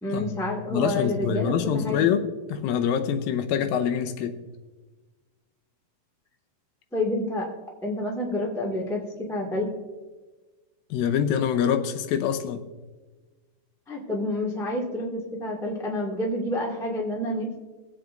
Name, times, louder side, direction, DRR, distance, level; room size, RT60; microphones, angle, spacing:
voice 1, 0.0-2.1 6.9-7.5 7.8-9.7 13.9-17.6, left 1 dB, 5° left, -2 dB, 0.3 m, -29 dB
voice 2, 0.7-4.4 10.9-12.7, left 8 dB, 85° left, 7 dB, 2.4 m, -25 dB
22.0 x 8.1 x 2.6 m, 1.3 s
omnidirectional pair, 4.1 m